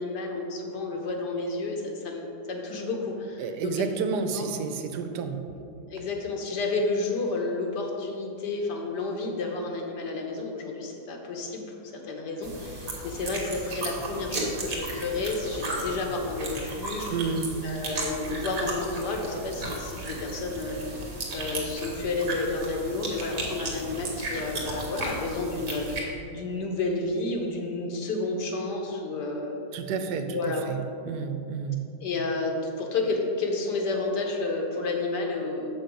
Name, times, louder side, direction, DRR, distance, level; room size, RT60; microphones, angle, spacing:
voice 1, 0.0-3.9 4.3-4.5 5.9-11.6 12.0-17.1 17.6-29.6 30.3-30.6 32.0-35.7, left 3 dB, 90° left, 1 dB, 1.6 m, -31 dB
voice 2, 3.4-5.4 17.1-17.5 29.7-30.4 30.7-30.8 31.1-31.9, right 5 dB, 90° right, 7 dB, 1.2 m, -30 dB
sound 1, 12.4-26.0, right 2 dB, 55° right, 1.7 m, -35 dB
7.1 x 5.8 x 5.1 m, 2.7 s
omnidirectional pair, 1.8 m